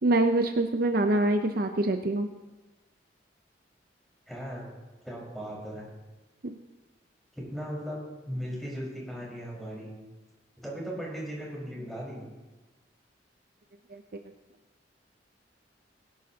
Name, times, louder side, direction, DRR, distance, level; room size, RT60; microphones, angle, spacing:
voice 1, 0.0-2.3 13.9-14.0, right 2 dB, 55° right, 6 dB, 0.7 m, -25 dB
voice 2, 4.3-4.7 5.0-5.9 7.3-9.9 10.6-12.2, equal, ahead, -5 dB, 4.8 m, -37 dB
21.0 x 11.5 x 2.9 m, 1.1 s
head